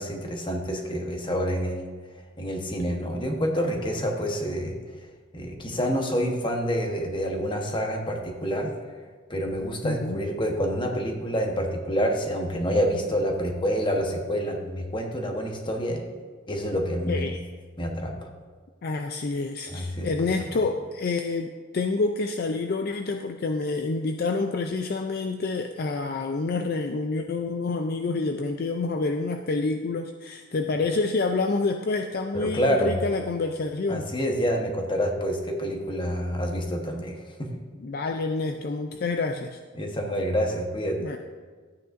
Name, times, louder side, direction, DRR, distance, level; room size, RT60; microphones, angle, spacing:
voice 1, 0.0-1.8 2.4-4.8 5.3-8.7 9.3-16.0 16.5-17.3 17.8-18.3 19.7-20.6 32.3-32.9 33.9-37.5 39.7-41.0, equal, 25° left, 2 dB, 1.1 m, -27 dB
voice 2, 9.8-10.2 17.1-17.4 18.8-34.1 37.8-39.6 41.0-41.2, left 3 dB, 50° left, 5 dB, 0.4 m, -28 dB
13.5 x 9.1 x 2.6 m, 1.5 s
head